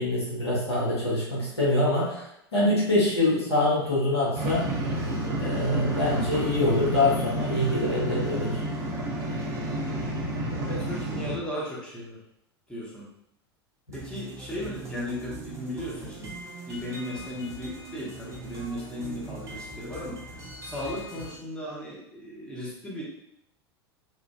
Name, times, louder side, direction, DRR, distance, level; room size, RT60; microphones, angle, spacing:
voice 1, 0.0-2.2 2.5-4.7 5.4-8.6, left 1 dB, 80° left, -7 dB, 1.1 m, -25 dB
sound 1, 4.4-11.4, right 1 dB, 55° right, 0.7 m, -30 dB
voice 2, 10.7-12.2 12.7-13.1 13.9-16.4 16.7-20.2 20.6-23.0, left 1 dB, 5° left, -7 dB, 0.9 m, -36 dB
sound 2, 13.9-21.3, right 2 dB, 20° right, 0.6 m, -41 dB
3.1 x 2.5 x 2.2 m, 0.80 s
figure-of-eight pair, 85°, 14 cm